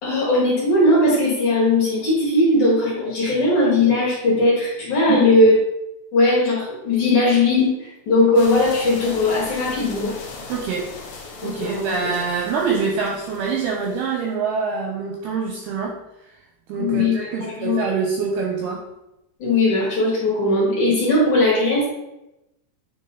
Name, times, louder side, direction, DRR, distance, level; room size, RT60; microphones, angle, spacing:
voice 1, 0.0-5.5 6.1-10.1 11.4-12.1 16.8-17.8 19.4-21.9, left 2 dB, 50° left, -6 dB, 2.7 m, -19 dB
sound 1, 8.3-14.2, left 4 dB, 75° left, 1.8 m, -38 dB
voice 2, 10.5-11.0 11.4-16.0 16.7-18.8, right 5 dB, 80° right, 0 dB, 2.3 m, -25 dB
9.6 x 3.6 x 4.0 m, 0.90 s
omnidirectional pair, 5.4 m